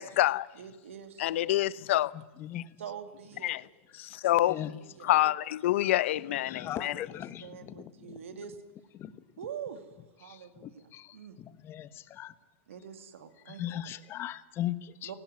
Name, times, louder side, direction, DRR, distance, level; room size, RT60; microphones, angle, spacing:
voice 1, 0.0-0.5 1.2-2.1 2.5-2.6 3.4-3.6 4.0-4.6 5.0-6.9, left 15 dB, 70° left, 0.7 m, -27 dB
voice 2, 0.5-1.5 2.8-3.6 4.2-5.1 6.7-8.6 9.4-11.4 12.7-13.9 15.0-15.1, right 8 dB, 80° right, 2.6 m, -45 dB
voice 3, 2.1-2.7 4.5-5.1 6.4-8.2 8.9-9.1 10.2-12.3 13.5-15.1, left 12 dB, 35° left, 1.3 m, -39 dB
17.5 x 17.5 x 9.6 m
hypercardioid pair, 120°, 7 cm